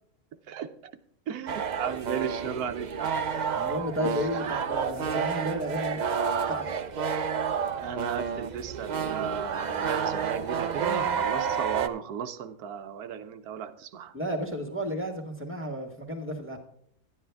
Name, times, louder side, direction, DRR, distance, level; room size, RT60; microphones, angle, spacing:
voice 1, 1.3-3.2 7.8-14.1, right 8 dB, 90° right, 8 dB, 1.2 m, -35 dB
sound 1, 1.5-11.9, right 6 dB, 65° right, 0.4 m, -30 dB
voice 2, 3.5-6.0 6.5-6.6 14.1-16.6, equal, 10° right, 5 dB, 1.5 m, -32 dB
11.5 x 9.9 x 3.4 m, 0.67 s
omnidirectional pair, 1.5 m